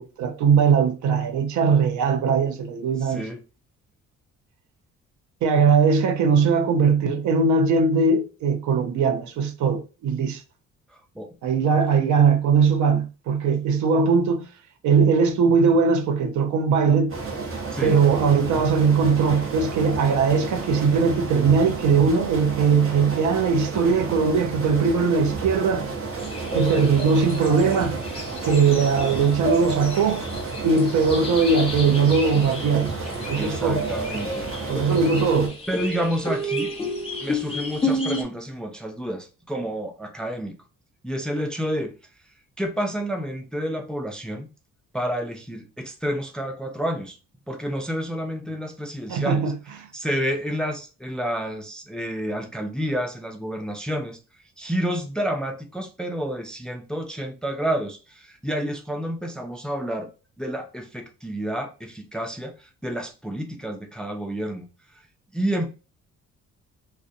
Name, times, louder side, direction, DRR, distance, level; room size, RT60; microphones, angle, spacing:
voice 1, 0.0-3.2 5.4-10.4 11.4-14.4 14.8-17.1 17.8-25.9 26.5-28.0 28.4-30.2 30.6-32.9 33.3-33.8 34.7-35.5 49.1-49.5, right 5 dB, 75° right, 0.5 m, -20 dB
voice 2, 3.0-3.4 11.2-11.3 17.7-18.0 33.3-34.8 35.7-36.7 37.2-40.6 41.0-41.9 42.6-44.5 44.9-47.2 47.5-49.5 49.9-54.2 54.6-60.1 60.4-64.7 65.3-65.7, equal, 5° left, 0.3 m, -29 dB
sound 1, 17.1-35.5, right 3 dB, 45° right, 0.8 m, -32 dB
sound 2, 26.2-38.2, equal, 20° left, 0.8 m, -31 dB
2.5 x 2.1 x 2.5 m
cardioid pair, 90°, 30 cm